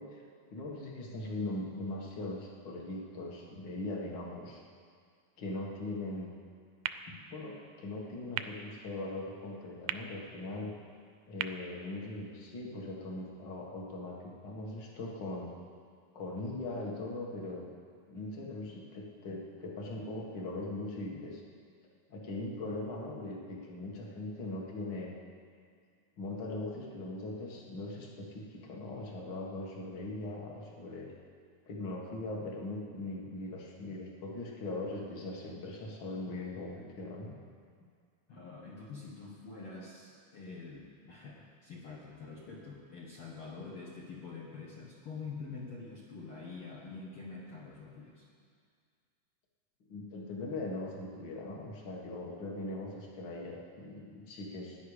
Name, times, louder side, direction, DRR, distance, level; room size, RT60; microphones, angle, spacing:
voice 1, 0.0-4.6 5.4-6.3 7.1-10.7 11.3-15.5 16.1-17.7 18.1-21.4 22.1-25.1 26.2-31.1 31.7-37.4 49.9-54.8, left 2 dB, 40° left, -1 dB, 1.8 m, -40 dB
sound 1, 6.8-12.8, right 10 dB, 85° right, 2.2 m, -44 dB
voice 2, 38.3-48.3, left 4 dB, 60° left, -4 dB, 1.5 m, -46 dB
17.0 x 10.5 x 4.9 m, 2.1 s
omnidirectional pair, 4.0 m